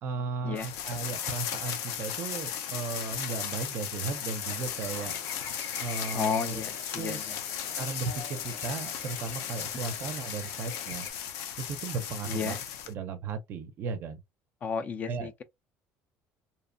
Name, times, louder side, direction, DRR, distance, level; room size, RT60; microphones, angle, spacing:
voice 1, 0.0-5.1 5.8-6.6 6.9-7.2 7.8-11.1 11.6-12.6 12.9-14.2 15.1-15.3, right 4 dB, 45° right, 0.5 m, -35 dB
sound 1, 0.6-12.9, left 9 dB, 80° left, 0.6 m, -36 dB
Chirp tweet / Buzz, 4.4-11.1, left 5 dB, 60° left, 1.0 m, -44 dB
voice 2, 6.1-7.4 12.3-12.6 14.6-15.4, left 6 dB, 30° left, 0.4 m, -33 dB
2.7 x 2.0 x 2.5 m
cardioid pair, 150°, 5 cm